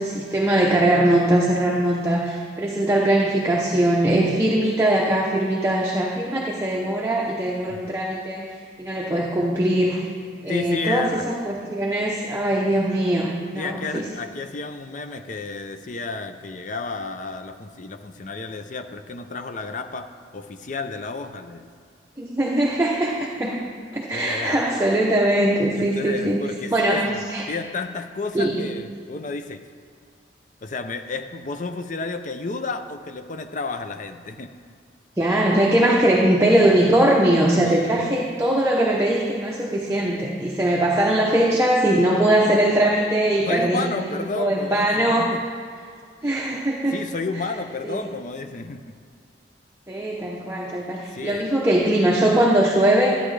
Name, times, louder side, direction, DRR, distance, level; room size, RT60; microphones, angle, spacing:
voice 1, 0.0-8.5 8.8-10.1 10.4-14.1 22.2-23.6 23.9-26.4 26.7-27.5 28.3-28.6 35.2-45.3 46.2-47.0 47.8-48.0 49.9-53.2, right 1 dB, 15° right, -2 dB, 0.7 m, -21 dB
voice 2, 10.4-11.3 13.5-21.7 24.1-24.6 25.8-27.2 27.5-29.6 30.6-34.5 43.5-45.4 46.9-49.0 51.1-51.5, left 3 dB, 40° left, 8 dB, 0.5 m, -31 dB
12.0 x 9.0 x 3.2 m, 2.2 s
head